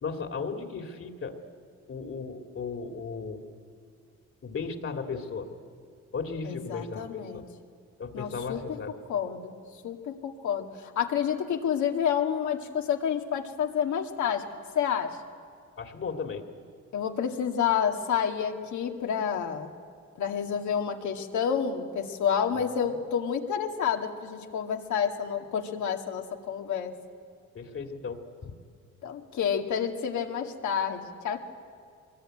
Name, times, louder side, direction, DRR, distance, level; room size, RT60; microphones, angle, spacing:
voice 1, 0.0-1.4 1.9-3.5 4.4-5.5 6.1-7.5 8.0-8.9 15.8-16.5 27.5-28.5, left 5 dB, 45° left, 5 dB, 2.7 m, -36 dB
voice 2, 6.4-7.5 8.1-8.8 9.1-9.5 9.8-14.5 14.7-15.2 16.9-19.7 20.2-26.9 29.0-31.4, left 8 dB, 75° left, 3 dB, 2.2 m, -29 dB
23.5 x 21.5 x 9.1 m, 2.3 s
cardioid pair, 90°, 30 cm